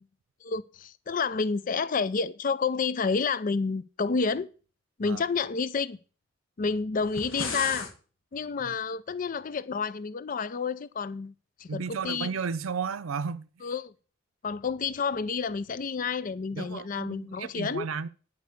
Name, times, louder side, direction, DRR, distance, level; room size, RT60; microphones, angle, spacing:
voice 1, 0.4-4.5 5.0-6.0 6.6-7.9 8.3-11.3 11.6-12.3 13.6-13.9 14.4-17.9, left 5 dB, 40° left, 0.4 m, -29 dB
sound 1, 7.0-7.9, left 4 dB, 75° left, 1.7 m, -34 dB
voice 2, 11.7-13.5 16.5-18.1, right 5 dB, 85° right, 0.5 m, -33 dB
10.5 x 4.7 x 8.0 m
head